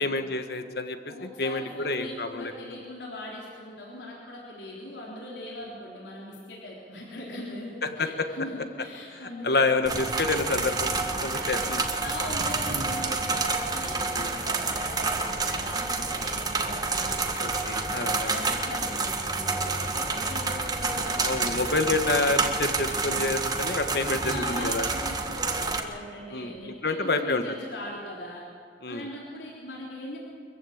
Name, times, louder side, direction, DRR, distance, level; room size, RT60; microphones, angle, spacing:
voice 1, 0.0-2.5 8.0-8.3 9.1-11.8 14.1-14.3 17.4-18.4 21.2-24.8 26.3-27.4 28.8-29.0, left 3 dB, 60° left, 8 dB, 1.5 m, -28 dB
voice 2, 1.1-9.9 11.4-11.6 12.0-22.1 24.2-28.4 28.9-30.2, left 1 dB, 85° left, -4 dB, 3.8 m, -40 dB
sound 1, 9.9-25.8, right 3 dB, 20° right, 1.6 m, -29 dB
24.0 x 15.0 x 8.7 m, 2.3 s
head